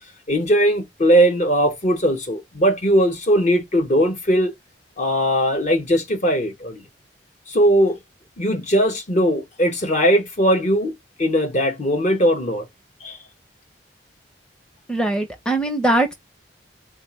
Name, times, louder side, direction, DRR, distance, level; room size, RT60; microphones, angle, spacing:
voice 1, 0.3-4.5 5.0-6.8 7.5-8.0 8.4-10.9 11.2-12.7 13.0-13.2, equal, 40° left, 0.8 m, -19 dB
voice 2, 14.9-16.1, right 2 dB, 5° left, 0.6 m, -21 dB
3.9 x 2.0 x 3.0 m
head